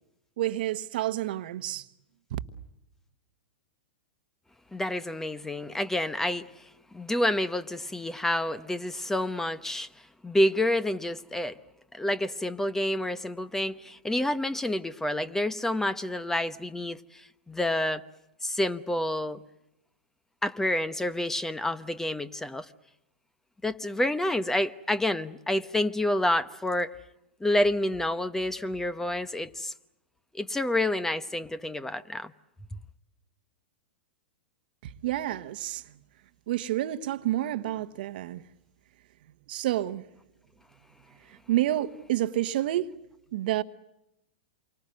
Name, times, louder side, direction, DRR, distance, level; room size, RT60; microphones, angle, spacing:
voice 1, 0.4-1.9 2.3-2.4 34.8-35.8 36.5-38.4 39.5-40.0 41.3-42.9 43.3-43.6, right 14 dB, 65° right, 1.2 m, -29 dB
voice 2, 4.7-6.6 6.9-9.9 10.2-11.6 11.9-18.0 18.4-19.4 20.4-22.7 23.6-27.0 27.4-29.7 30.3-32.3, left 1 dB, 5° left, 1.0 m, -28 dB
28.0 x 24.5 x 7.8 m
hypercardioid pair, 110°, 6 cm